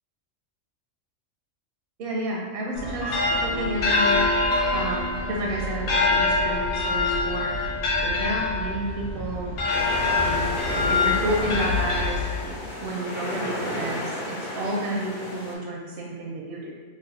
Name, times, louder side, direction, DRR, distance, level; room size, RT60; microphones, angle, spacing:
voice 1, 2.0-4.2 4.7-7.6 8.0-9.5 10.0-12.2 12.8-16.7, right 1 dB, 60° right, -2 dB, 0.6 m, -31 dB
sound 1, 2.7-12.7, left 3 dB, 80° left, 1.0 m, -25 dB
sound 2, 9.7-15.5, left 1 dB, 50° left, 0.7 m, -33 dB
3.2 x 2.0 x 4.0 m, 1.5 s
omnidirectional pair, 1.4 m